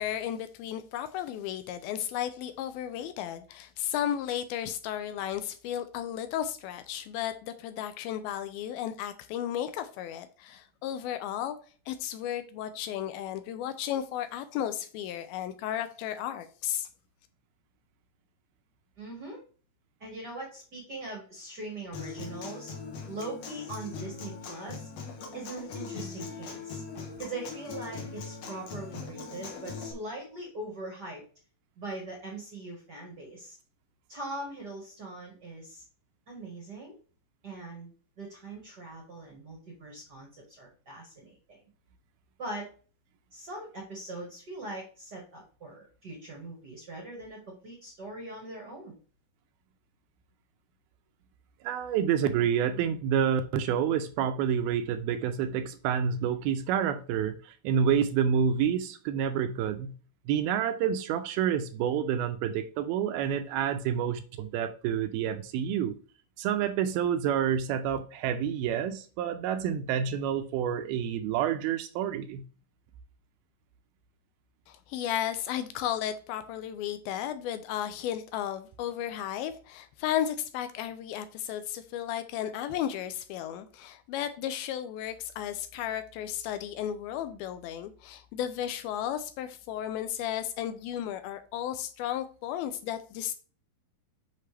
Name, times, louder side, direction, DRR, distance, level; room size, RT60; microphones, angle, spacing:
voice 1, 0.0-11.6 11.9-16.9 74.7-93.3, left 10 dB, 80° left, 2.3 m, -34 dB
voice 2, 19.0-19.4 20.0-22.7 23.1-24.9 25.3-26.8 27.2-31.2 31.8-33.6 34.1-35.8 36.3-37.0 37.4-37.9 38.2-41.6 42.4-42.7 43.3-48.9, right 2 dB, 50° right, 1.3 m, -41 dB
Human voice / Acoustic guitar, 21.9-29.9, left 5 dB, 60° left, 1.8 m, -40 dB
voice 3, 51.6-59.9 60.3-66.0 66.4-72.4, right 8 dB, 80° right, 2.4 m, -28 dB
6.7 x 5.8 x 3.4 m
omnidirectional pair, 4.5 m